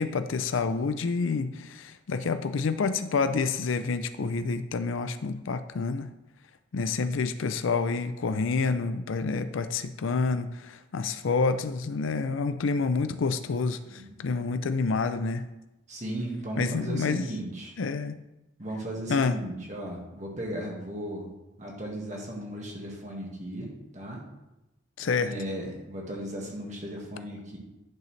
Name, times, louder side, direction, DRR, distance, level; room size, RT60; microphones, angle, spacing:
voice 1, 0.0-6.1 6.7-15.5 16.6-17.3 17.8-18.2 19.1-19.3 25.0-25.3, left 4 dB, 85° left, 10 dB, 0.5 m, -28 dB
voice 2, 13.9-14.2 15.9-17.7 18.6-21.3 21.6-24.2 25.2-27.6, right 1 dB, 40° right, -2 dB, 1.8 m, -36 dB
10.5 x 6.8 x 3.3 m, 0.96 s
head